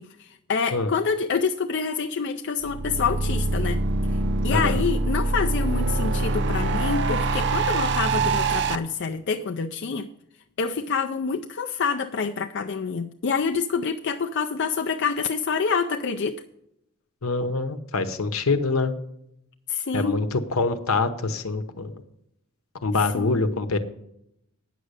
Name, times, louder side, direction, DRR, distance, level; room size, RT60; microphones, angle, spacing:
voice 1, 0.0-3.8 4.1-4.2 4.4-10.1 10.6-16.4 19.7-20.2 23.1-23.3, left 5 dB, 55° left, 6 dB, 0.5 m, -27 dB
sound 1, 2.6-8.7, right 3 dB, 55° right, 0.6 m, -24 dB
voice 2, 4.5-4.8 17.2-18.9 19.9-22.0 22.8-23.8, left 3 dB, 75° left, 9 dB, 0.9 m, -25 dB
9.2 x 6.4 x 8.1 m, 0.79 s
head